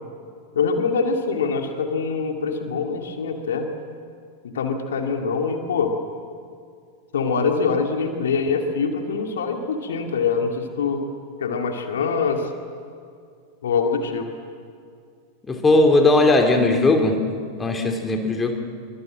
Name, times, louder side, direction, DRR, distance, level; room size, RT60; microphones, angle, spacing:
voice 1, 0.5-3.7 4.4-5.9 7.1-11.0 11.4-12.5 13.6-14.3, left 5 dB, 65° left, 4 dB, 2.4 m, -24 dB
voice 2, 15.5-17.2 17.6-18.6, left 2 dB, 15° left, 4 dB, 2.9 m, -18 dB
25.5 x 24.0 x 7.6 m, 2.3 s
figure-of-eight pair, 90°, 0 cm